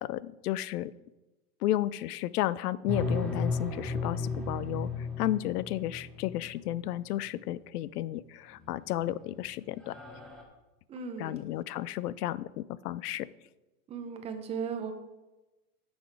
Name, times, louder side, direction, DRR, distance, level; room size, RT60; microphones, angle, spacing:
voice 1, 0.0-0.9 1.6-10.0 11.2-13.3, left 14 dB, 90° left, 19 dB, 0.5 m, -33 dB
sound 1, 2.9-6.8 8.6-9.1 9.4-9.5 9.8-10.4, left 3 dB, ahead, 0.9 m, -34 dB
voice 2, 10.9-11.4 13.9-15.0, right 6 dB, 15° right, 6 dB, 0.6 m, -36 dB
8.3 x 6.5 x 4.6 m, 1.1 s
supercardioid pair, 145°, 45 cm